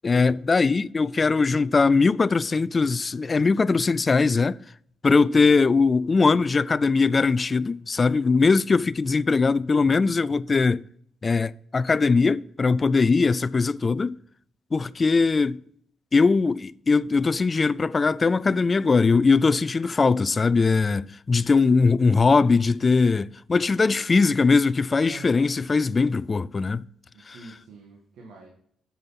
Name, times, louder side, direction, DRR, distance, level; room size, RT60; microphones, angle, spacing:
voice 1, 0.0-4.6 5.0-10.8 11.2-14.2 14.7-15.6 16.1-26.8 27.3-27.4, left 4 dB, 30° left, 0.3 m, -21 dB
voice 2, 5.1-5.5 13.0-13.3 14.7-15.3 25.0-25.5 27.1-28.5, right 3 dB, 80° right, 1.7 m, -46 dB
7.4 x 7.0 x 5.7 m
cardioid pair, 90°, 0 cm